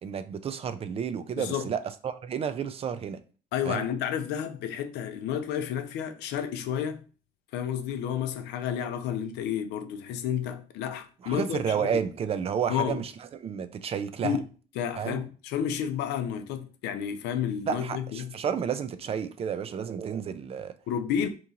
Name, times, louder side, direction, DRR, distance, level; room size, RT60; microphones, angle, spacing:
voice 1, 0.0-3.2 3.7-3.9 11.2-13.1 13.4-14.4 15.0-15.2 17.7-20.7, right 7 dB, 35° right, 0.4 m, -31 dB
voice 2, 1.4-1.7 3.5-7.0 7.5-12.0 12.7-13.0 14.2-14.5 14.8-18.3 20.9-21.3, left 9 dB, 85° left, 0.5 m, -31 dB
3.0 x 2.7 x 3.7 m
cardioid pair, 110°, 17 cm